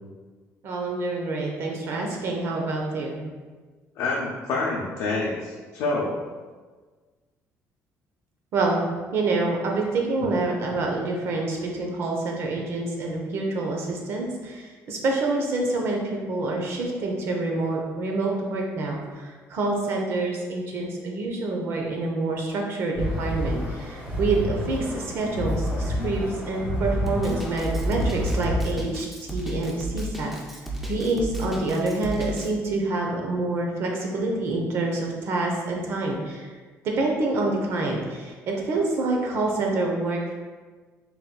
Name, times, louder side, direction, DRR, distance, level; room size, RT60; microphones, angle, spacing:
voice 1, 0.6-3.2 8.5-8.8 9.1-30.3 30.9-36.5 36.8-40.3, right 2 dB, 45° right, 0 dB, 0.7 m, -27 dB
voice 2, 4.0-6.1, left 3 dB, 75° left, -3 dB, 0.5 m, -27 dB
sound 1, 23.0-28.6, left 1 dB, 20° right, 1.5 m, -28 dB
Drum kit, 27.1-32.5, right 1 dB, ahead, 0.4 m, -33 dB
4.1 x 4.0 x 2.2 m, 1.4 s
cardioid pair, 180°, 6 cm